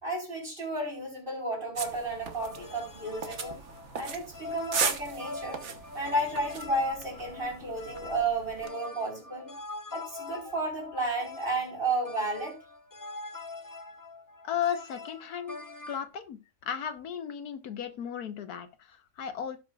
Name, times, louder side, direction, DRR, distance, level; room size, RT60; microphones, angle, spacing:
voice 1, 0.0-3.6 3.9-5.6 5.9-9.5 9.9-12.6, right 2 dB, 35° right, 4.8 m, -32 dB
sound 1, 1.8-8.7, right 6 dB, 55° right, 1.3 m, -37 dB
sound 2, 2.4-16.1, left 3 dB, 20° left, 0.7 m, -43 dB
voice 2, 14.4-19.6, left 8 dB, 85° left, 1.5 m, -35 dB
17.5 x 5.9 x 2.4 m
omnidirectional pair, 1.6 m